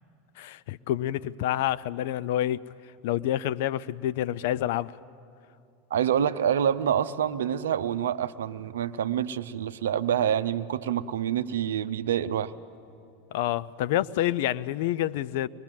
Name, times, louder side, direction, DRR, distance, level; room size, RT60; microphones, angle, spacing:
voice 1, 0.4-2.6 3.0-5.0 13.3-15.5, left 13 dB, 60° left, 17 dB, 0.4 m, -28 dB
voice 2, 5.9-12.5, right 9 dB, 70° right, 12 dB, 0.6 m, -27 dB
24.0 x 20.5 x 7.5 m, 2.6 s
figure-of-eight pair, 80°, 0 cm